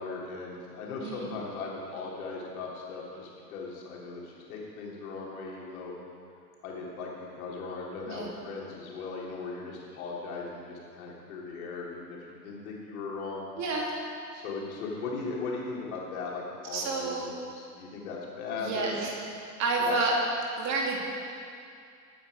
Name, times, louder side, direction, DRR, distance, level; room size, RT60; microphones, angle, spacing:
voice 1, 0.0-5.9 6.6-13.5 14.3-19.0 19.8-20.0, left 4 dB, 55° left, -3 dB, 3.3 m, -38 dB
voice 2, 1.0-1.4 8.1-8.3 13.6-13.9 16.7-17.3 18.6-19.1 19.6-20.1 20.6-21.0, right 3 dB, 35° right, -2 dB, 3.0 m, -29 dB
18.5 x 9.0 x 4.9 m, 2.4 s
figure-of-eight pair, 85°, 50 cm